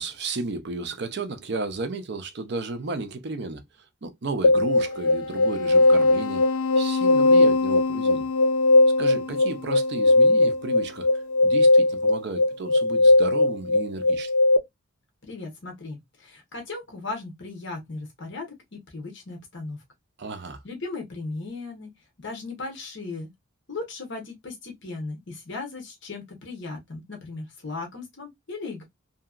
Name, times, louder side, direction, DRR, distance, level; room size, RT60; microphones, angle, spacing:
voice 1, 0.0-3.6 4.0-6.4 6.8-8.3 9.0-14.3 20.2-20.6, right 3 dB, 50° right, 0.5 m, -33 dB
sound 1, 4.4-14.6, left 2 dB, 90° left, 0.5 m, -19 dB
voice 2, 15.2-18.5 18.7-19.8 20.6-21.9 22.2-23.3 23.7-28.8, left 3 dB, 55° left, 0.9 m, -36 dB
2.8 x 2.7 x 2.4 m
head